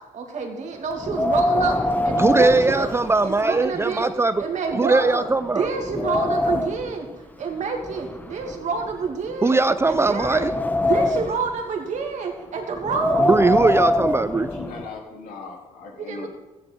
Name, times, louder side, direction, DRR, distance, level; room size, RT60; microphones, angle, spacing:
voice 1, 0.1-2.9 3.2-4.1 4.4-5.3 5.5-10.5 10.8-13.4 16.0-16.3, right 5 dB, 60° right, 3 dB, 2.4 m, -28 dB
Wind, 1.0-3.6 4.0-4.1 4.7-4.8 5.3-6.9 7.8-9.3 9.9-11.5 12.8-14.9, left 1 dB, 10° left, 0.9 m, -24 dB
voice 2, 2.2-4.4 4.8-5.7 9.4-10.5 13.2-14.5, right 3 dB, 20° right, 12 dB, 0.4 m, -20 dB
voice 3, 14.6-16.3, left 4 dB, 85° left, -1 dB, 3.2 m, -38 dB
14.0 x 9.7 x 4.6 m, 1.1 s
cardioid pair, 100°, 14 cm